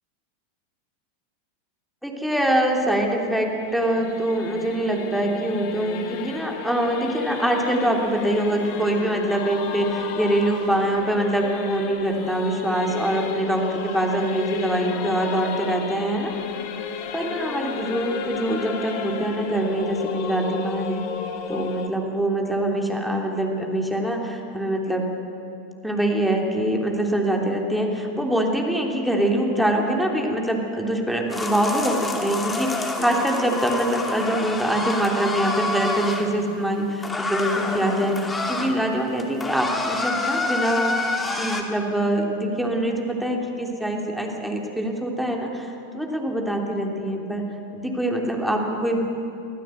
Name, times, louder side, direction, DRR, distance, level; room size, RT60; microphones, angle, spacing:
voice 1, 2.0-16.3 17.1-21.0 21.5-25.1 25.8-41.1 41.3-47.4 47.7-49.0, right 1 dB, ahead, 0 dB, 3.3 m, -24 dB
Singing / Musical instrument, 2.5-21.9, left 7 dB, 55° left, 1.9 m, -33 dB
sound 1, 31.3-36.3 37.0-38.7 39.1-41.6, left 2 dB, 15° left, 2.5 m, -27 dB
24.0 x 15.0 x 7.8 m, 2.8 s
figure-of-eight pair, 90°, 0 cm